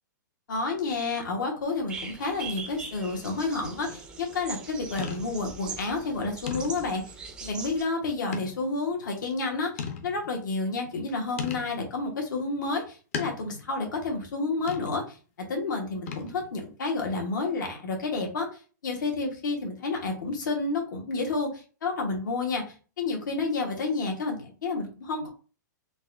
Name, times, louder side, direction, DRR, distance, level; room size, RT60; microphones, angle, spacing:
voice 1, 0.5-7.1 7.4-15.2 15.5-18.5 18.8-22.6 23.0-25.3, left 3 dB, 75° left, 1 dB, 1.2 m, -30 dB
sound 1, 1.9-7.8, right 5 dB, 10° right, 0.3 m, -41 dB
sound 2, 3.8-4.1 5.0-5.5 6.0-6.1 6.5-7.1 8.3-8.7 9.2-9.3 9.8-10.4 11.4-11.8 13.1-13.7 14.7-15.1 16.1-16.5, left 6 dB, 45° left, 0.6 m, -37 dB
4.0 x 2.3 x 2.5 m, 0.37 s
hypercardioid pair, 165°, 10 cm